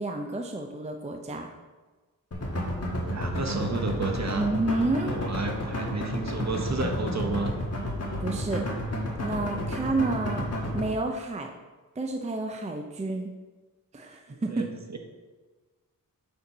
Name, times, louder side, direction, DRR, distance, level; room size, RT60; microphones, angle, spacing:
voice 1, 0.0-1.5 4.3-5.2 8.2-8.6 9.2-10.5 10.7-11.5 12.0-13.3 13.9-14.7, right 2 dB, 20° right, 3 dB, 0.5 m, -30 dB
sound 1, 2.3-10.8, equal, 45° left, 1.4 m, -31 dB
voice 2, 3.0-4.5 5.1-7.6 14.3-15.0, right 3 dB, 50° right, 3 dB, 0.9 m, -31 dB
6.6 x 4.4 x 5.4 m, 1.3 s
wide cardioid pair, 110°, 35 cm